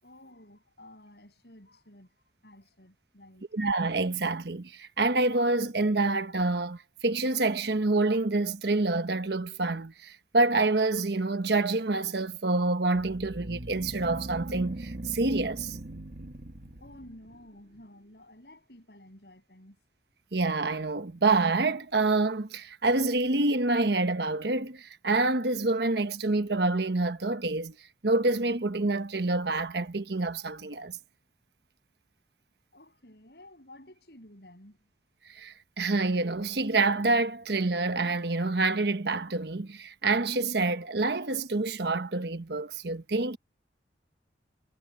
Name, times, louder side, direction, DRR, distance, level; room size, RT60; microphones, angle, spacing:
voice 1, 0.0-3.5 16.7-19.8 32.7-34.9, left 1 dB, 65° left, 7.4 m, -52 dB
voice 2, 3.5-15.8 20.3-27.7 28.0-31.0 35.3-43.4, right 3 dB, 70° right, 1.1 m, -27 dB
sound 1, 12.9-17.3, right 1 dB, 50° right, 1.9 m, -40 dB
head